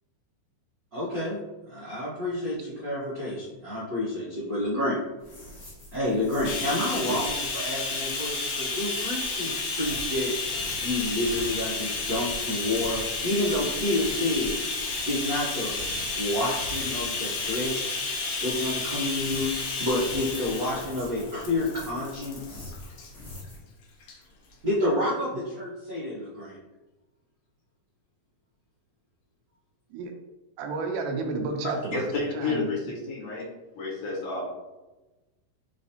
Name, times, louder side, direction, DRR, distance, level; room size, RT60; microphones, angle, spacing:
voice 1, 0.9-1.4 1.6-5.0 5.9-10.3 10.8-14.6 15.1-15.7 16.1-18.1 18.4-19.5 19.8-22.7 24.6-26.6, left 1 dB, 65° right, -10 dB, 0.9 m, -29 dB
sound 1, 5.2-23.6, left 1 dB, 45° left, 0.9 m, -45 dB
Bathtub (filling or washing), 6.4-23.1 24.0-24.2 24.5-24.6, left 3 dB, 85° left, 1.2 m, -32 dB
voice 2, 30.6-32.7, right 4 dB, 85° right, 4 dB, 2.1 m, -31 dB
voice 3, 31.6-33.5 33.7-34.5, left 3 dB, 65° left, -5 dB, 1.8 m, -31 dB
5.1 x 3.3 x 2.8 m, 1.1 s
omnidirectional pair, 3.6 m